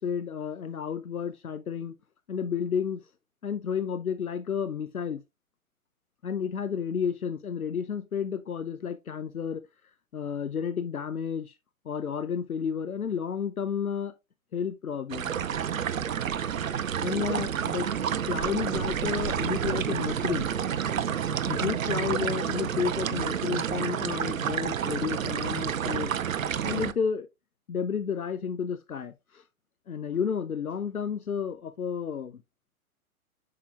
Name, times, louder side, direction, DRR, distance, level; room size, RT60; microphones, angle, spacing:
voice 1, 0.0-1.9 2.3-3.1 3.4-5.2 6.2-9.6 10.1-11.6 11.9-14.1 14.5-15.6 17.0-17.9 18.3-20.7 21.5-26.1 26.6-27.3 27.7-29.4 29.9-32.4, left 7 dB, 80° left, 0.7 m, -31 dB
sound 1, 15.1-26.9, right 8 dB, 65° right, 0.6 m, -29 dB
7.5 x 6.0 x 2.3 m
figure-of-eight pair, 115°, 43 cm